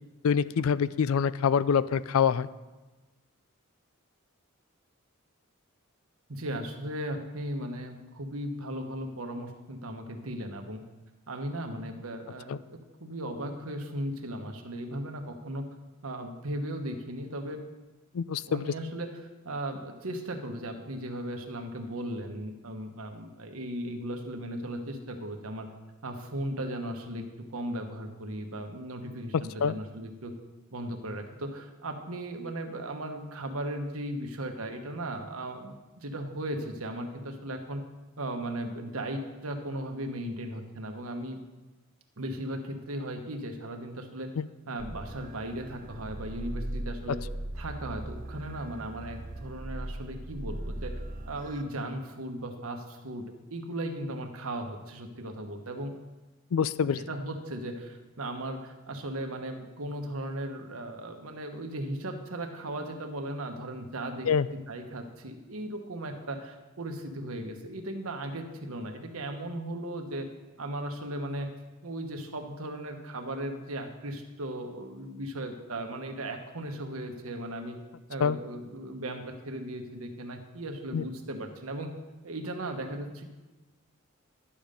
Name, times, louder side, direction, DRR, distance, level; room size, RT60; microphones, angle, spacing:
voice 1, 0.2-2.5 12.5-12.6 18.1-18.6 29.3-29.7 44.4-44.5 47.1-47.2 56.5-57.0 64.3-64.5 78.2-78.4 80.9-81.0, left 7 dB, 80° left, 17 dB, 0.4 m, -25 dB
voice 2, 6.3-10.8 11.3-15.6 16.0-17.6 18.5-25.7 26.0-30.3 30.7-37.8 38.2-41.4 42.2-44.3 44.7-47.2 47.6-51.0 51.3-55.9 56.8-70.3 70.6-71.5 71.8-77.8 78.1-81.9 82.2-83.3, right 1 dB, 90° right, 5 dB, 1.2 m, -37 dB
sound 1, 44.8-51.6, right 1 dB, 40° right, 0.7 m, -39 dB
11.0 x 7.3 x 5.2 m, 1.2 s
head